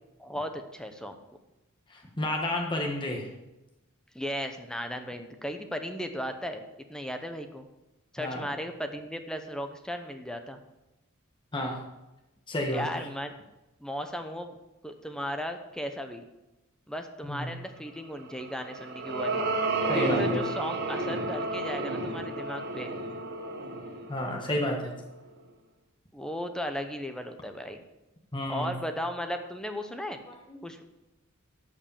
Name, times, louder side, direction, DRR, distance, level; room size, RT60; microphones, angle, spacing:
voice 1, 0.2-1.2 4.1-6.6 6.9-7.6 8.1-10.6 12.7-13.4 13.8-14.6 14.8-16.3 16.9-19.4 19.9-22.9 26.1-27.8 28.5-30.2 30.6-30.8, equal, 5° left, 7 dB, 0.8 m, -36 dB
voice 2, 1.9-3.3 8.2-8.4 11.5-11.8 12.5-13.1 17.2-17.5 19.9-20.4 24.1-24.9 28.3-28.7 30.3-30.6, left 1 dB, 25° left, 1 dB, 1.4 m, -31 dB
sound 1, 18.4-24.9, right 2 dB, 50° right, 1.3 m, -31 dB
13.0 x 5.4 x 6.9 m, 0.98 s
head